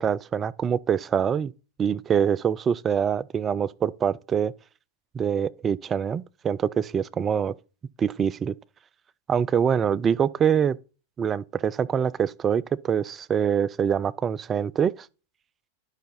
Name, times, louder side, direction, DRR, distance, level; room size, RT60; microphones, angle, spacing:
voice 1, 0.0-1.5 1.8-4.5 5.1-7.5 8.0-8.5 9.3-10.8 11.2-14.9, right 7 dB, 25° right, 0.4 m, -24 dB
11.5 x 5.7 x 4.1 m
figure-of-eight pair, 90°, 0 cm